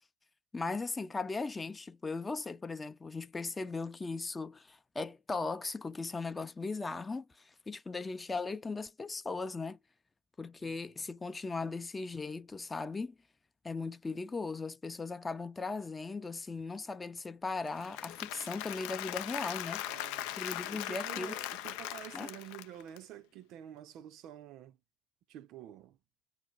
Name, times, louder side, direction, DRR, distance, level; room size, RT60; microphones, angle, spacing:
voice 1, 0.5-9.8 10.4-13.2 13.6-19.8 20.4-21.4 22.1-22.3, left 3 dB, 15° left, 0.6 m, -38 dB
Applause / Crowd, 17.6-23.0, left 14 dB, 65° left, 0.4 m, -40 dB
voice 2, 19.8-24.8 25.3-26.0, right 11 dB, 50° right, 0.5 m, -49 dB
4.9 x 2.1 x 4.0 m
hypercardioid pair, 90°, 0 cm